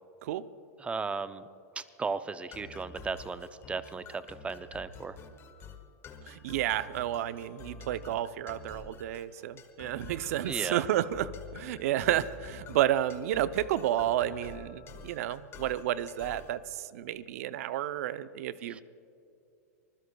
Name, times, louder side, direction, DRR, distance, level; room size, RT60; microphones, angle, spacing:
voice 1, 0.8-1.5 1.8-5.2 10.5-10.8 18.7-18.8, right 4 dB, 15° right, 13 dB, 0.6 m, -36 dB
sound 1, 2.5-16.6, left 4 dB, 30° left, 1.5 m, -48 dB
voice 2, 6.3-18.8, right 12 dB, 65° right, 14 dB, 0.6 m, -31 dB
25.5 x 20.5 x 2.3 m, 2.6 s
hypercardioid pair, 115°, 9 cm